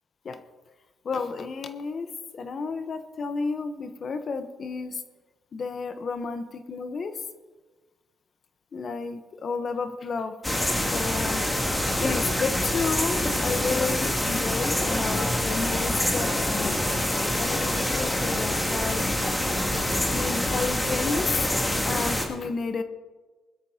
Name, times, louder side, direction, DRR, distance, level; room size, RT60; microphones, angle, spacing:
voice 1, 1.0-5.0 5.5-7.2 8.7-10.4 10.9-11.5 12.0-16.8 17.4-19.1 20.1-22.8, left 4 dB, 50° left, 9 dB, 1.0 m, -31 dB
sound 1, 10.4-22.2, left 1 dB, 15° left, 2.5 m, -26 dB
21.0 x 12.5 x 2.9 m, 1.3 s
cardioid pair, 90°, 0 cm